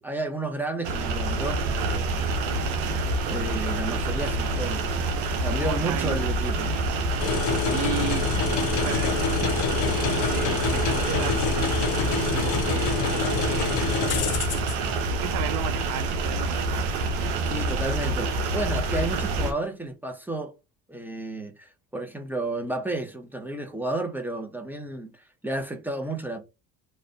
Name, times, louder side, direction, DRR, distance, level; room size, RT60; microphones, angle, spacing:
voice 1, 0.0-2.1 3.3-4.9 5.4-6.7 17.5-20.5 20.9-26.4, right 2 dB, 5° right, 1.0 m, -32 dB
sound 1, 0.8-19.5, right 2 dB, 80° right, 0.9 m, -27 dB
voice 2, 5.5-6.2 7.7-9.6 9.9-13.8 14.1-16.9, right 12 dB, 60° right, 0.5 m, -35 dB
sound 2, 7.2-14.7, left 7 dB, 75° left, 0.7 m, -27 dB
3.3 x 2.6 x 4.1 m
hypercardioid pair, 65°, 39 cm